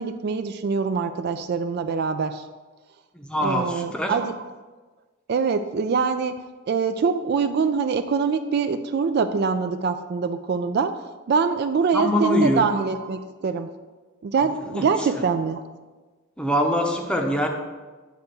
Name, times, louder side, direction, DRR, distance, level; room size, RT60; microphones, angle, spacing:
voice 1, 0.0-2.4 3.4-4.4 5.3-10.9 11.3-13.7 14.2-15.6, right 5 dB, 50° right, 9 dB, 0.3 m, -24 dB
voice 2, 3.1-4.1 11.9-12.6 14.7-15.1 16.4-17.5, equal, 5° left, 2 dB, 0.7 m, -23 dB
9.1 x 3.5 x 6.6 m, 1.3 s
head